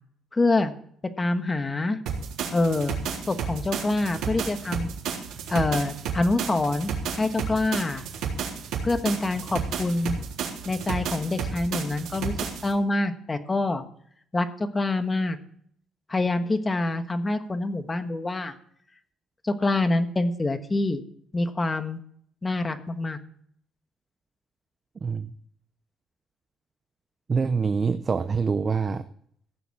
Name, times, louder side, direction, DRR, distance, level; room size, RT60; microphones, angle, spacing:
voice 1, 0.3-0.7 1.2-2.0 2.5-3.0 3.3-4.9 5.5-8.0 8.8-10.2 10.6-12.3 12.6-13.8 14.3-15.4 16.1-18.5 19.4-21.0 21.3-22.0 22.4-23.2, left 2 dB, 20° left, 8 dB, 1.3 m, -26 dB
sound 1, 2.1-12.7, right 6 dB, 85° right, 3.7 m, -32 dB
voice 2, 27.3-29.0, right 5 dB, 30° right, 11 dB, 0.7 m, -25 dB
16.0 x 7.1 x 8.5 m, 0.65 s
cardioid pair, 120°, 0 cm